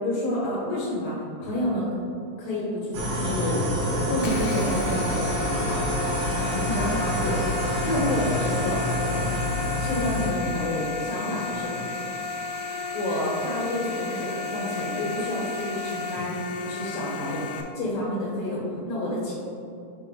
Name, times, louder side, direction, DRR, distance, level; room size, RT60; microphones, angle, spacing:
voice 1, 0.0-1.9 2.4-3.6 4.0-5.8 6.3-7.5 7.8-9.3 9.8-11.7 12.9-17.4 17.7-19.3, left 1 dB, 60° left, -6 dB, 2.3 m, -29 dB
sound 1, 2.9-10.3, left 1 dB, 60° right, 1.8 m, -27 dB
sound 2, 4.2-17.6, left 3 dB, 85° left, 2.1 m, -33 dB
6.7 x 4.3 x 3.7 m, 2.6 s
omnidirectional pair, 3.5 m